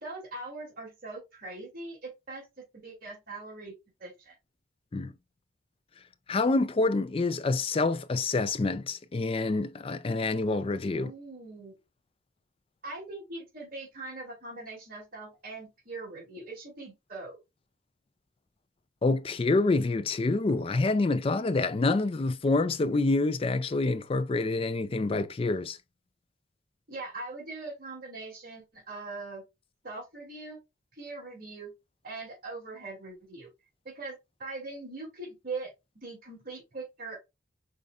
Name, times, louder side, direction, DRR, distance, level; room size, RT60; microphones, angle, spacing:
voice 1, 0.0-3.7 4.0-4.4 10.9-11.8 12.8-17.4 26.9-29.4 29.8-30.6 30.9-31.7 32.0-33.5 33.8-37.2, right 3 dB, 50° right, 2.4 m, -41 dB
voice 2, 6.3-11.1 19.0-25.8, left 3 dB, 30° left, 0.4 m, -27 dB
5.3 x 3.8 x 2.3 m
head